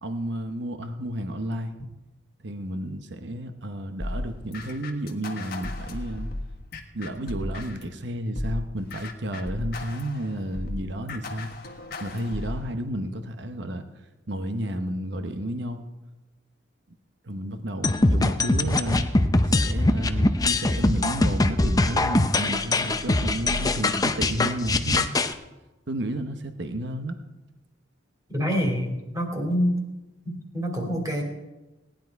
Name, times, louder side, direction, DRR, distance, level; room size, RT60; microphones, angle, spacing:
voice 1, 0.0-1.7 2.4-6.3 6.9-11.5 12.0-13.8 14.3-15.8 17.2-19.1 19.5-25.1 25.9-27.2, right 1 dB, 65° right, 8 dB, 1.0 m, -32 dB
sound 1, 4.0-7.9 8.4-12.7, left 1 dB, 55° left, 1.4 m, -35 dB
sound 2, 17.8-25.3, left 2 dB, 20° left, 0.6 m, -22 dB
voice 2, 28.3-29.8 30.2-31.2, equal, 20° right, 1 dB, 2.6 m, -26 dB
18.0 x 10.5 x 4.7 m, 1.1 s
head